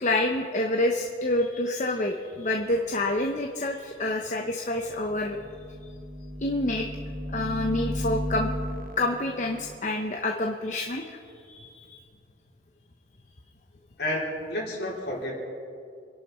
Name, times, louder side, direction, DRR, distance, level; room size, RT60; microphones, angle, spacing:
voice 1, 0.0-5.4 6.4-6.9 7.3-8.5 9.0-11.2 11.5-12.0, left 1 dB, 40° left, 2 dB, 0.9 m, -27 dB
sound 1, 5.0-9.8, equal, 50° right, 1.1 m, -34 dB
voice 2, 14.0-15.3, left 1 dB, 60° left, -4 dB, 4.4 m, -30 dB
27.5 x 11.5 x 4.4 m, 2.3 s
head